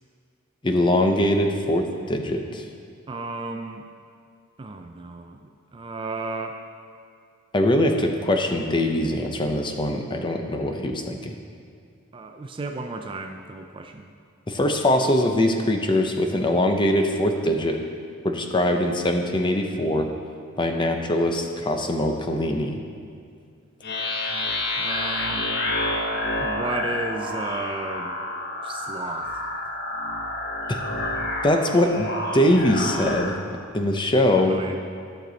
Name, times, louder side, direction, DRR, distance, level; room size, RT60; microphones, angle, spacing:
voice 1, 0.6-2.6 7.5-11.4 14.5-17.8 18.2-20.1 20.6-22.8 30.7-30.8 31.4-33.4 33.7-34.5, left 1 dB, 25° left, 4 dB, 0.6 m, -22 dB
voice 2, 3.1-3.9 4.6-6.6 12.1-14.1 24.2-24.4 24.7-25.7 26.4-28.2 28.6-29.4 34.3-34.8, right 3 dB, 25° right, 5 dB, 0.4 m, -34 dB
sound 1, 23.8-33.3, left 1 dB, 55° left, 1.0 m, -29 dB
12.0 x 6.7 x 4.0 m, 2.3 s
head